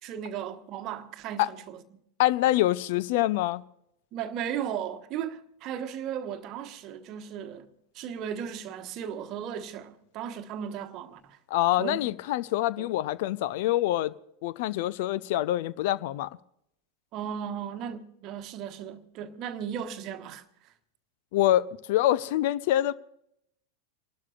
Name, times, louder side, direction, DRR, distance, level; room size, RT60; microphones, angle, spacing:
voice 1, 0.0-1.8 4.1-7.7 7.9-11.4 11.8-12.1 12.8-12.9 17.1-20.4, right 9 dB, 35° right, 1.2 m, -36 dB
voice 2, 2.2-3.6 11.5-14.1 14.4-16.3 21.3-22.9, left 14 dB, 50° left, 0.6 m, -25 dB
29.0 x 12.5 x 2.5 m
figure-of-eight pair, 90°, 0 cm